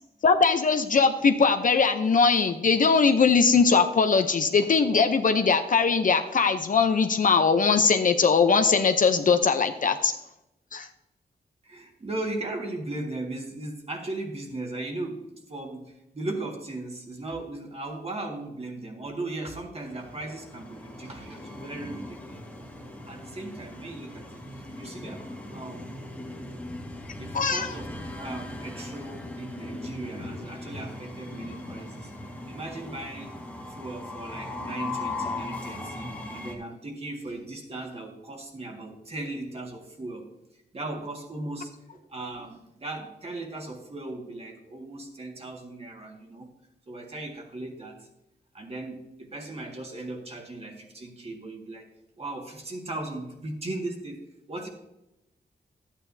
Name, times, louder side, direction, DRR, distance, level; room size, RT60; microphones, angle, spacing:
voice 1, 0.2-10.1 10.7-10.9 27.3-27.7, left 5 dB, 55° left, 7 dB, 0.7 m, -21 dB
voice 2, 11.6-22.7 23.1-25.9 27.2-32.1 32.5-33.4 33.7-40.2 40.7-46.5 46.9-48.1 48.5-51.9 52.2-54.2 54.5-54.7, right 2 dB, 35° right, 2 dB, 1.9 m, -37 dB
Train, 19.7-36.5, left 2 dB, 10° left, 1.7 m, -39 dB
12.5 x 9.0 x 2.7 m, 0.90 s
wide cardioid pair, 125°, 17 cm